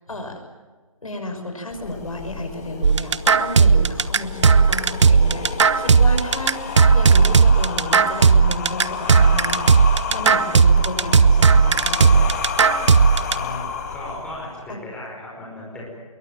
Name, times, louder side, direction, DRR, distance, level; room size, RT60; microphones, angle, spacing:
voice 1, 0.1-0.4 1.0-12.5 14.7-14.8, left 1 dB, 70° left, 5 dB, 6.1 m, -32 dB
sound 1, 1.7-14.7, left 6 dB, 25° left, 2.0 m, -31 dB
sound 2, 2.8-13.3, right 5 dB, 55° right, 0.8 m, -15 dB
voice 2, 13.3-13.7 13.9-15.9, left 1 dB, 5° left, -5 dB, 5.4 m, -36 dB
25.5 x 22.5 x 7.5 m, 1.4 s
figure-of-eight pair, 155°, 18 cm